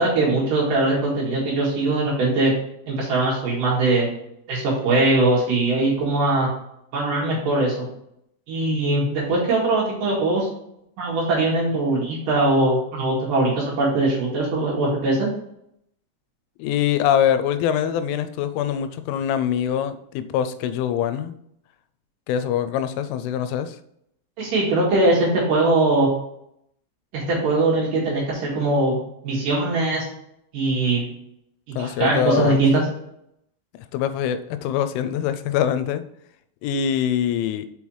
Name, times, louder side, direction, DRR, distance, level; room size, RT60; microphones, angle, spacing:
voice 1, 0.0-2.5 2.9-4.1 4.5-6.5 6.9-7.8 8.5-10.5 11.0-15.3 24.4-26.1 27.1-29.0 29.2-30.1 30.5-31.1 31.8-32.8, right 2 dB, 55° right, -4 dB, 2.8 m, -21 dB
voice 2, 16.6-21.3 22.3-23.8 31.8-32.6 33.9-36.0 36.6-37.7, left 9 dB, 90° left, 11 dB, 3.0 m, -23 dB
6.4 x 5.5 x 3.1 m, 0.75 s
omnidirectional pair, 5.4 m